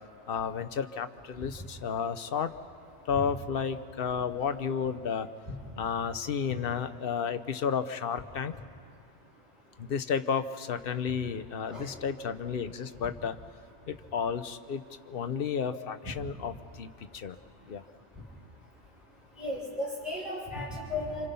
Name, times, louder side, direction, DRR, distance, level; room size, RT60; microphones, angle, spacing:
voice 1, 0.3-2.5 3.0-5.3 5.8-8.5 9.8-13.4 13.9-17.4 17.7-17.8, left 6 dB, 55° left, 10 dB, 1.0 m, -32 dB
voice 2, 19.4-21.3, left 2 dB, ahead, -7 dB, 6.4 m, -35 dB
29.5 x 26.5 x 5.4 m, 2.3 s
omnidirectional pair, 1.2 m